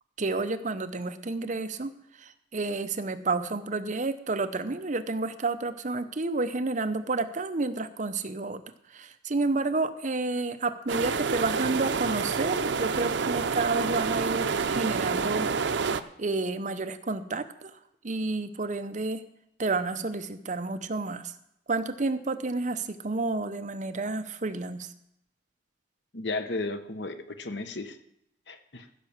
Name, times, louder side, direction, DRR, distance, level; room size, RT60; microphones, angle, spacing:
voice 1, 0.2-1.9 2.2-8.6 8.9-15.5 16.2-17.8 18.0-19.2 19.6-21.3 21.7-24.9, right 3 dB, 45° right, 10 dB, 0.8 m, -30 dB
sound 1, 10.9-16.0, right 5 dB, 90° right, 0.6 m, -28 dB
voice 2, 26.1-28.0 28.5-28.8, left 2 dB, 75° left, 9 dB, 1.1 m, -34 dB
15.0 x 5.9 x 7.2 m, 0.77 s
head